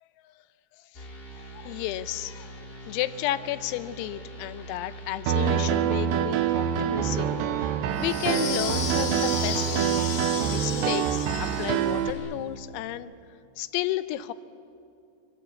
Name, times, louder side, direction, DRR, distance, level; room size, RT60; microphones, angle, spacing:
sound 1, 0.9-12.3, right 1 dB, 25° left, 1.3 m, -43 dB
voice 1, 1.4-2.5 2.9-7.3 7.6-7.7 8.0-9.8 10.3-13.1 13.6-14.3, left 14 dB, 85° left, 13 dB, 3.5 m, -32 dB
Piano, 5.3-12.1, right 9 dB, 80° right, 2.6 m, -26 dB
sound 2, 8.0-12.0, left 6 dB, 70° left, 5.0 m, -34 dB
25.5 x 25.5 x 8.5 m, 2.4 s
omnidirectional pair, 6.0 m